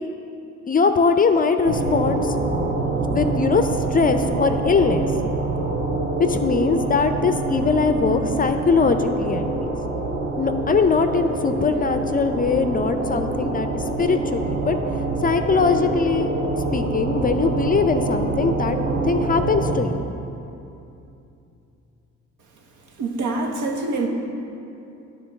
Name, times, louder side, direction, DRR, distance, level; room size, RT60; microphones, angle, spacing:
voice 1, 0.7-2.3 2.8-5.1 6.2-9.7 10.4-14.8 15.2-16.3 16.7-18.8 19.0-20.1, left 5 dB, 30° left, 8 dB, 0.4 m, -21 dB
sound 1, 1.6-19.8, right 3 dB, 35° right, 0.9 m, -25 dB
voice 2, 23.0-24.1, right 3 dB, 75° right, 2 dB, 1.0 m, -25 dB
9.7 x 3.9 x 5.9 m, 2.7 s
cardioid pair, 90°, 30 cm